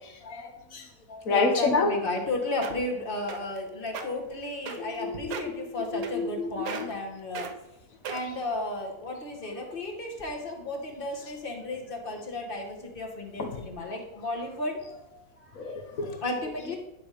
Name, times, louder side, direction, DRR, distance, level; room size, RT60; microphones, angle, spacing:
voice 1, 0.2-0.8 1.3-1.9 5.0-5.1 5.9-6.5 13.4-13.5 15.6-16.1, left 3 dB, 60° left, 4 dB, 1.5 m, -27 dB
voice 2, 1.3-7.5 8.1-15.6 16.2-16.8, left 2 dB, 35° left, 1 dB, 1.5 m, -34 dB
sound 1, 2.3-2.4 2.6-2.9 3.3-3.6 3.9-4.0 4.7-5.0 5.3-5.6 6.0-6.4 6.7-7.0 7.3-7.5 8.0-8.4 9.0-9.1, right 7 dB, 70° right, 1.2 m, -36 dB
10.5 x 5.0 x 4.9 m, 0.88 s
omnidirectional pair, 1.6 m